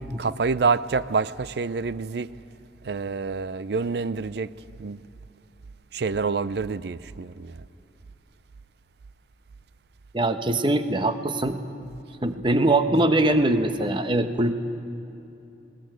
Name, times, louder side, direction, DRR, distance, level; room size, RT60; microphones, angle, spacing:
voice 1, 0.2-2.3 2.8-4.5 4.8-5.0 5.9-7.6, right 4 dB, 60° right, 0.5 m, -27 dB
voice 2, 10.1-11.6 12.2-14.5, right 2 dB, 25° right, 1.0 m, -22 dB
20.5 x 18.5 x 9.1 m
head